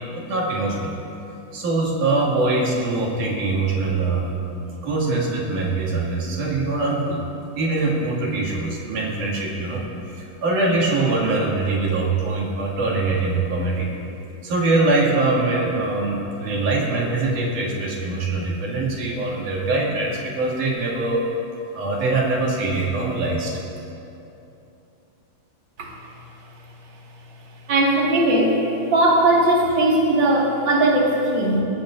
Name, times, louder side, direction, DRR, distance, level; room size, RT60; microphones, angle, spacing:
voice 1, 0.2-0.9 1.5-4.3 4.8-7.2 7.6-9.9 10.2-13.9 14.4-21.3 21.7-23.5, right 2 dB, 85° right, -4 dB, 3.9 m, -23 dB
voice 2, 27.7-28.6 28.9-31.6, right 1 dB, 40° right, -3 dB, 2.5 m, -18 dB
22.5 x 18.0 x 2.6 m, 2.8 s
omnidirectional pair, 3.5 m